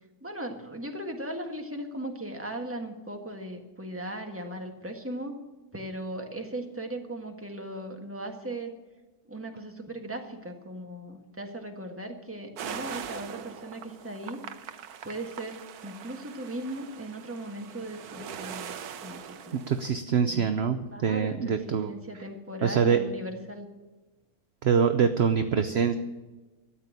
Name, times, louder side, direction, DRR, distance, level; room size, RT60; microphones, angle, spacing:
voice 1, 0.2-5.3 5.7-8.7 9.3-14.4 15.0-18.7 19.0-19.2 19.5-19.7 20.9-21.6 21.9-23.7, right 1 dB, 10° right, 3 dB, 1.5 m, -38 dB
sound 1, 12.6-19.9, right 8 dB, 80° right, 1.3 m, -42 dB
voice 2, 19.5-21.9 22.6-23.0 24.6-26.0, right 6 dB, 55° right, 9 dB, 0.8 m, -24 dB
13.5 x 8.9 x 8.3 m, 1.2 s
omnidirectional pair, 1.6 m